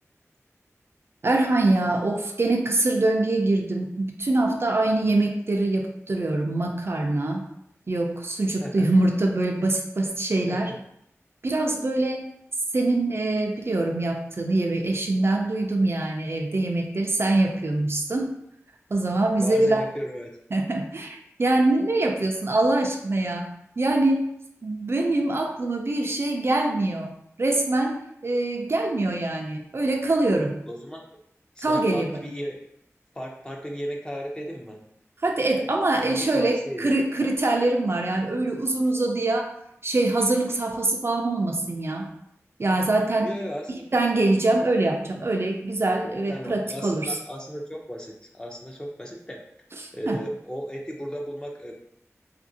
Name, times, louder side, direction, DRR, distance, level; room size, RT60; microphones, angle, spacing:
voice 1, 1.2-7.4 7.9-10.7 11.4-12.3 12.7-18.3 18.9-19.8 20.5-24.3 24.6-30.6 31.6-32.3 35.2-39.5 39.8-42.1 42.6-43.3 43.9-47.2 49.8-50.2, right 2 dB, 50° right, 2 dB, 0.4 m, -24 dB
voice 2, 19.4-20.3 30.7-31.0 31.6-32.6 33.1-34.8 36.0-36.9 43.2-43.8 46.3-49.4 49.9-51.7, equal, 15° left, -1 dB, 0.5 m, -35 dB
2.8 x 2.5 x 2.6 m, 0.75 s
wide cardioid pair, 70°, 5 cm